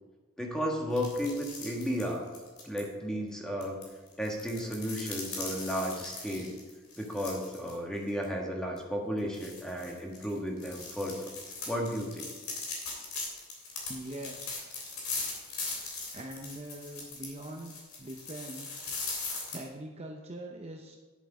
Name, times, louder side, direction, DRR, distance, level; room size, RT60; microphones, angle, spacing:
voice 1, 0.4-2.3 2.6-3.8 4.2-6.5 7.0-11.3 11.7-12.3, equal, 5° left, 0 dB, 1.4 m, -33 dB
sound 1, 0.9-2.8 3.6-7.7 8.1-8.2 8.8-8.9 9.3-19.6, left 3 dB, 70° left, 3.2 m, -40 dB
voice 2, 13.9-14.9 15.4-18.9 19.2-21.0, right 1 dB, 30° right, 1 dB, 0.7 m, -44 dB
10.5 x 7.8 x 4.9 m, 1.3 s
head